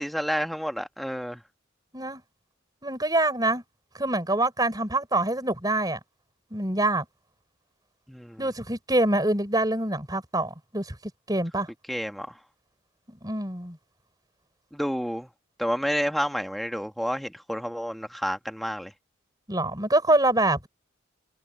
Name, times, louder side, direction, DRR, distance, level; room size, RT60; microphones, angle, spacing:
voice 1, 0.0-1.4 8.1-8.4 11.9-12.4 14.7-15.3 15.6-18.9, equal, ahead, 1.7 m, -30 dB
voice 2, 2.8-3.6 4.0-6.0 6.5-7.1 8.4-11.0 11.3-11.7 13.1-13.8 19.5-20.7, right 2 dB, 20° right, 5.4 m, -25 dB
head